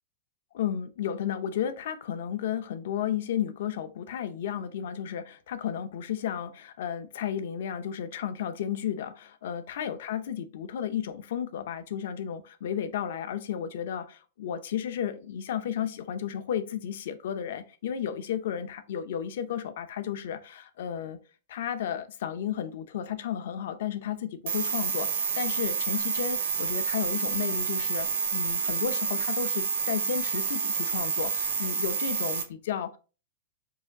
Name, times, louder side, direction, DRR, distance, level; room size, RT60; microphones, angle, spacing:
voice 1, 0.5-21.2 21.5-33.0, left 9 dB, 60° left, 11 dB, 0.6 m, -33 dB
sound 1, 24.5-32.4, right 6 dB, 85° right, 1.3 m, -29 dB
4.8 x 2.5 x 3.9 m, 0.35 s
supercardioid pair, 170°, 0 cm